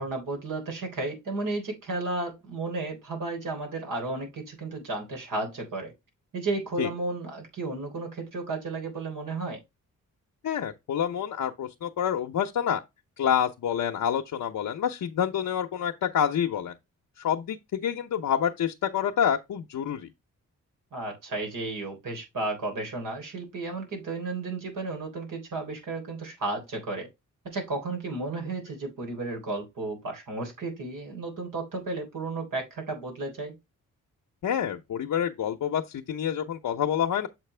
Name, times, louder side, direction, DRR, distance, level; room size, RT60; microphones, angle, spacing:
voice 1, 0.0-5.9 6.3-9.6 20.9-27.1 27.4-33.5, right 2 dB, 75° right, 3.7 m, -33 dB
voice 2, 10.4-12.8 13.2-16.7 17.2-20.1 34.4-37.3, left 9 dB, 65° left, 0.8 m, -27 dB
7.5 x 4.6 x 3.3 m
cardioid pair, 75°, 33 cm